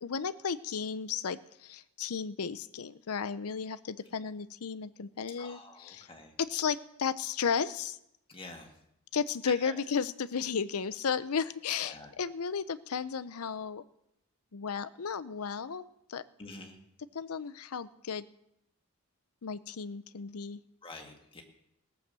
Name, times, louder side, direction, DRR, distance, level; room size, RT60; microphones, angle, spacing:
voice 1, 0.0-6.1 6.4-8.0 9.1-13.8 14.5-16.2 17.1-18.2 19.4-20.6, left 6 dB, 80° left, 16 dB, 0.6 m, -34 dB
voice 2, 5.3-6.3 8.3-8.7 9.6-9.7 11.8-12.1 16.4-16.8 20.8-21.4, left 2 dB, 25° left, 3 dB, 1.8 m, -47 dB
18.0 x 7.7 x 6.7 m, 0.81 s
head